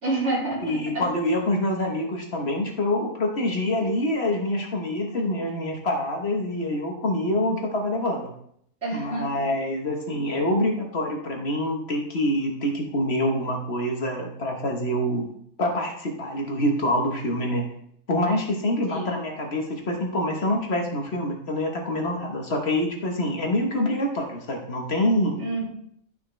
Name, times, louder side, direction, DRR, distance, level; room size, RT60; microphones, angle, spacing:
voice 1, 0.0-1.1 8.8-9.3 18.9-19.2 25.4-25.6, right 2 dB, 60° right, -4 dB, 3.1 m, -28 dB
voice 2, 0.6-8.3 8.9-17.7 18.1-25.4, left 1 dB, 50° left, 2 dB, 1.4 m, -26 dB
11.5 x 5.5 x 3.3 m, 0.69 s
omnidirectional pair, 1.4 m